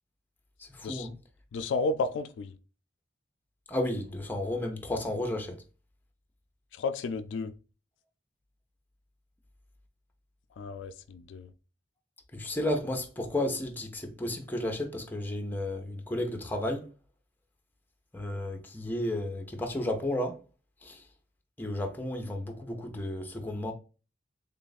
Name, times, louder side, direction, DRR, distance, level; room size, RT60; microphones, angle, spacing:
voice 1, 0.6-1.1 3.7-5.6 12.3-16.8 18.1-20.4 20.8-21.0 21.6-23.7, left 1 dB, 10° left, 0.5 m, -33 dB
voice 2, 1.5-2.6 6.7-7.5 10.6-11.5, left 3 dB, 80° left, 0.3 m, -32 dB
3.3 x 2.4 x 3.9 m
head